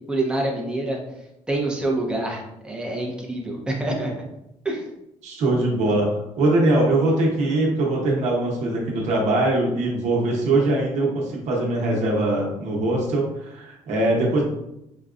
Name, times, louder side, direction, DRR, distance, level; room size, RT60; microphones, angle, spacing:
voice 1, 0.1-1.0 1.5-4.1 4.6-4.8, right 2 dB, 5° right, -2 dB, 0.8 m, -26 dB
voice 2, 5.2-14.4, right 2 dB, 70° right, -2 dB, 1.0 m, -22 dB
5.4 x 2.3 x 2.5 m, 0.85 s
cardioid pair, 135°, 12 cm